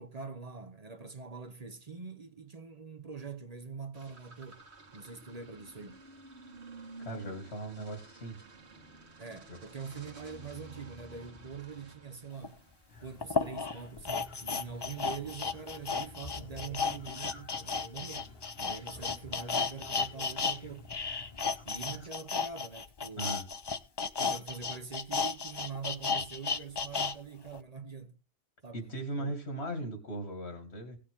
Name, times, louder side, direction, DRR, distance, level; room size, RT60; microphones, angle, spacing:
voice 1, 0.0-4.6 4.9-6.0 9.2-12.6 13.0-18.3 18.6-20.9 21.6-23.4 24.2-28.1 28.6-29.3, right 5 dB, 40° right, 1.0 m, -44 dB
sound 1, 3.9-13.5, right 2 dB, 85° right, 1.8 m, -52 dB
voice 2, 7.0-8.4 9.5-9.6 23.2-23.5 28.7-31.0, right 1 dB, 80° left, 2.5 m, -38 dB
sound 2, 12.4-12.5 13.2-20.6 20.8-27.1 27.5-27.6, left 5 dB, 30° left, 0.5 m, -33 dB
sound 3, 12.9-22.1, left 3 dB, 65° left, 2.2 m, -51 dB
17.5 x 6.7 x 3.6 m
omnidirectional pair, 1.1 m